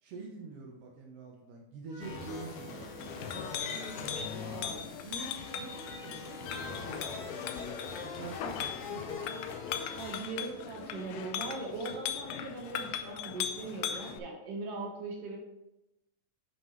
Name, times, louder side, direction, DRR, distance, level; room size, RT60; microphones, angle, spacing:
voice 1, 0.0-2.9 3.3-3.6 3.9-7.5 8.0-9.4, right 3 dB, 75° right, -1 dB, 1.4 m, -46 dB
sound 1, 1.9-4.5 5.2-6.9, right 1 dB, 30° right, 1.1 m, -51 dB
sound 2, 2.0-10.3, left 4 dB, 65° left, 1.8 m, -43 dB
Chink clink, 2.9-14.2, left 8 dB, 85° left, 2.3 m, -39 dB
voice 2, 3.7-4.7 9.9-15.4, right 3 dB, 55° right, 1 dB, 1.8 m, -40 dB
9.4 x 5.5 x 3.2 m, 0.90 s
omnidirectional pair, 4.1 m